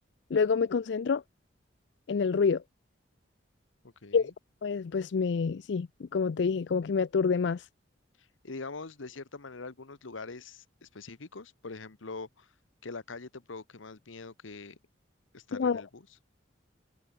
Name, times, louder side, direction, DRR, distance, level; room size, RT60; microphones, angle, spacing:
voice 1, 0.3-1.2 2.1-2.6 4.1-4.3 4.6-7.7 15.5-15.8, left 5 dB, 60° left, 0.4 m, -27 dB
voice 2, 3.8-4.3 8.2-12.5 12.8-14.8 15.3-16.1, left 3 dB, 90° left, 1.2 m, -43 dB
head